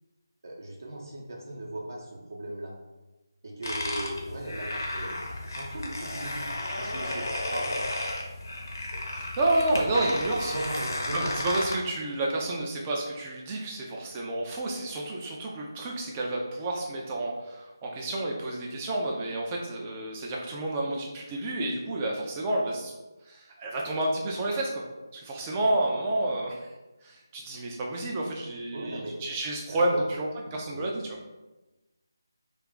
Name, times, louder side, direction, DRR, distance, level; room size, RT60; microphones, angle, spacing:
voice 1, 0.4-2.7 3.4-6.5 6.8-7.3 7.5-7.8 10.5-11.3 20.8-21.0 28.7-29.2 29.6-30.1 30.5-30.9, right 1 dB, 55° right, -1 dB, 0.7 m, -38 dB
sound 1, 3.6-11.8, left 1 dB, 50° left, 0.6 m, -33 dB
voice 2, 9.1-10.5 11.1-22.9 23.3-24.8 25.1-26.7 27.0-31.2, right 1 dB, 15° right, -2 dB, 0.3 m, -30 dB
2.4 x 2.3 x 3.7 m, 1.1 s
figure-of-eight pair, 160°, 2 cm